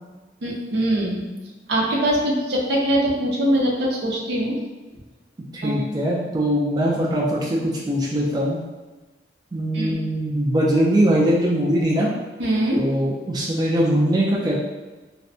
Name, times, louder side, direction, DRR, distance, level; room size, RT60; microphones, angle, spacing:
voice 1, 0.4-1.3 1.7-4.6 5.6-5.8 9.7-9.9 12.4-12.8, right 1 dB, 70° right, -2 dB, 0.5 m, -22 dB
voice 2, 5.5-8.6 9.5-12.1 12.8-14.5, equal, 25° right, -5 dB, 0.3 m, -21 dB
2.5 x 2.1 x 2.7 m, 1.2 s
head